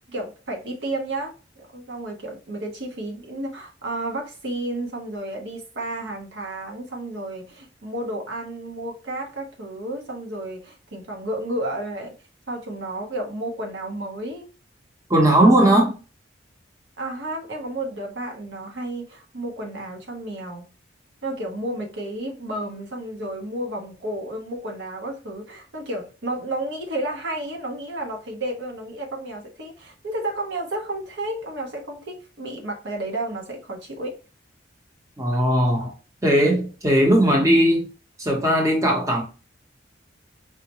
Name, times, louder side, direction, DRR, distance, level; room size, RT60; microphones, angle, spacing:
voice 1, 0.1-12.1 12.5-14.5 15.6-15.7 17.0-20.7 21.2-34.2, right 1 dB, 75° right, 0.9 m, -32 dB
voice 2, 15.1-15.9 35.2-35.9 36.2-37.9 38.2-39.2, right 1 dB, 15° right, 0.8 m, -18 dB
4.7 x 2.1 x 2.9 m
head